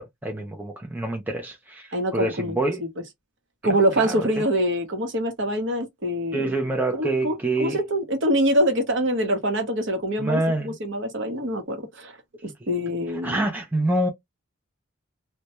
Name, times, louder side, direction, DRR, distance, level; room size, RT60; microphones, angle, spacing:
voice 1, 0.0-2.8 3.6-4.3 6.3-7.8 10.2-10.8 13.1-14.1, right 2 dB, 10° right, 0.4 m, -26 dB
voice 2, 1.9-2.6 3.6-6.5 6.9-12.1 12.4-13.5, equal, 60° right, 0.8 m, -25 dB
2.2 x 2.1 x 2.8 m
head